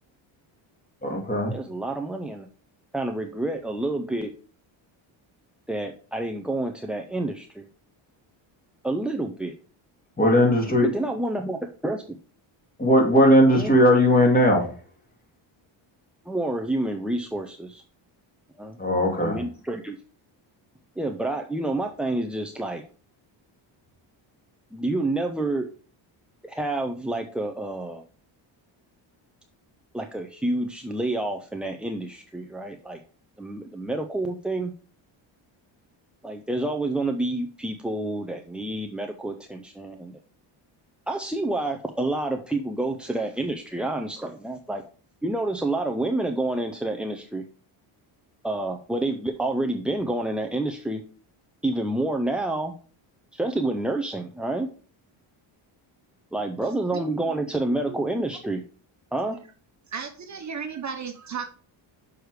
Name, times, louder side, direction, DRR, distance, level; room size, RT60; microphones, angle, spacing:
voice 1, 1.0-1.6 10.2-11.1 12.8-14.9 18.8-19.4, equal, 20° left, 2.1 m, -19 dB
voice 2, 1.5-2.5 2.9-4.3 5.7-7.7 8.8-9.5 10.9-12.0 16.3-17.8 18.6-18.8 19.2-20.0 21.0-22.8 24.7-25.7 26.4-28.0 29.9-33.0 33.4-34.7 36.2-40.2 41.1-44.8 45.2-47.4 48.4-51.0 51.6-52.7 53.3-54.7 56.3-58.6 59.1-59.4, right 2 dB, 5° right, 0.3 m, -28 dB
voice 3, 56.9-57.5 57.9-58.0 59.9-61.5, right 6 dB, 35° right, 1.0 m, -35 dB
6.4 x 4.8 x 4.7 m
cardioid pair, 125°, 49 cm